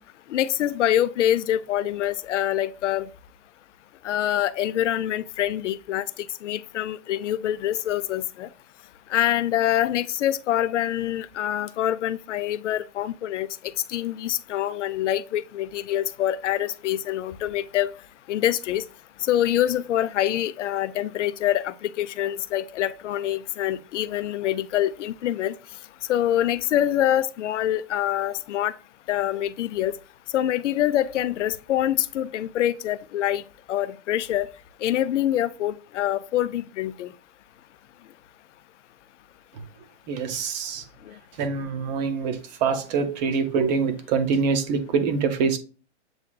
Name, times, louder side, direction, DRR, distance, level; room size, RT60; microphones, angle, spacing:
voice 1, 0.3-3.1 4.0-6.0 6.4-8.5 9.1-13.5 13.9-17.9 18.3-18.8 19.2-25.5 26.1-28.7 29.1-29.9 30.3-33.4 33.7-34.5 34.8-37.1, left 12 dB, 80° left, 0.5 m, -25 dB
voice 2, 40.1-40.8 41.4-45.6, right 5 dB, 35° right, 0.7 m, -25 dB
7.6 x 2.7 x 2.2 m
hypercardioid pair, 140°, 35 cm